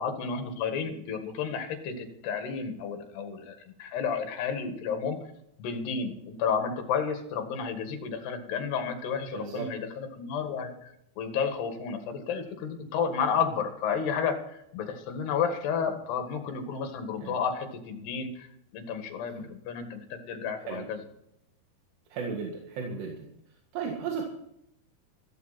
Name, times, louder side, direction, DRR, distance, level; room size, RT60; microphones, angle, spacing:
voice 1, 0.0-5.2 5.6-18.5 18.7-21.0, left 6 dB, 65° left, 6 dB, 3.7 m, -32 dB
voice 2, 9.3-9.7 17.2-17.4 19.4-19.5 20.7-20.9 22.1-23.3 23.7-24.2, right 5 dB, 70° right, 1 dB, 4.0 m, -35 dB
15.0 x 14.0 x 4.3 m, 0.77 s
omnidirectional pair, 5.3 m